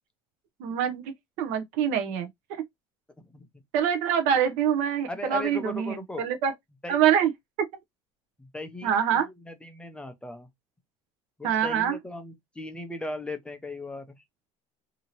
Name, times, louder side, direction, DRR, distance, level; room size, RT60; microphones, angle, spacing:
voice 1, 0.6-1.0 1.4-2.6 3.7-6.5 6.9-7.3 8.8-9.3 11.4-12.0, right 8 dB, 75° right, 0.7 m, -25 dB
voice 2, 5.1-6.2 6.8-7.0 8.4-10.5 11.4-14.2, left 2 dB, 10° left, 0.5 m, -38 dB
2.8 x 2.6 x 2.8 m
cardioid pair, 140°, 13 cm